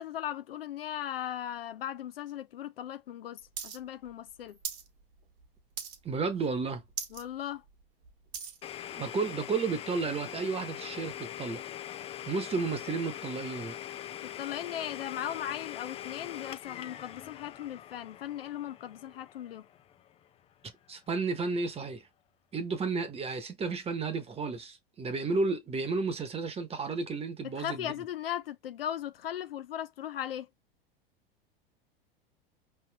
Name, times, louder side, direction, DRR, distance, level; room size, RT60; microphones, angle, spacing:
voice 1, 0.0-4.6 7.1-7.6 14.2-19.7 27.6-30.5, left 11 dB, 75° left, 0.6 m, -38 dB
sound 1, 3.6-3.8 4.0-4.9 5.2-5.5 5.8-6.2 6.6-6.7 6.9-7.2 7.7-8.6 9.3-9.4, right 8 dB, 65° right, 1.5 m, -39 dB
voice 2, 6.0-6.8 8.9-11.6 12.3-13.8 20.9-22.0 22.5-28.0, right 4 dB, 20° right, 1.1 m, -32 dB
Domestic sounds home sounds, 8.6-20.3, left 11 dB, 20° left, 0.4 m, -42 dB
5.1 x 3.5 x 2.3 m
hypercardioid pair, 90°, 29 cm